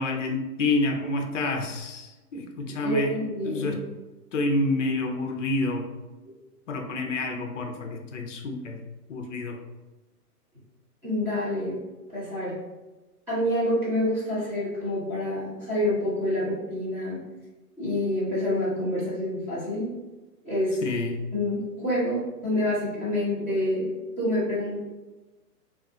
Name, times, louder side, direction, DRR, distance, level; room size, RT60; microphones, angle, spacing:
voice 1, 0.0-3.1 3.4-3.8 4.3-5.9 6.7-8.8 9.1-9.6 20.8-21.2, left 2 dB, 50° left, 4 dB, 0.5 m, -28 dB
voice 2, 2.8-3.8 6.2-6.3 11.0-11.7 12.1-12.5 13.3-17.2 17.8-19.9 20.4-20.8 21.3-24.8, left 1 dB, 5° right, -14 dB, 0.7 m, -27 dB
2.5 x 2.3 x 3.6 m, 1.1 s
hypercardioid pair, 155°, 48 cm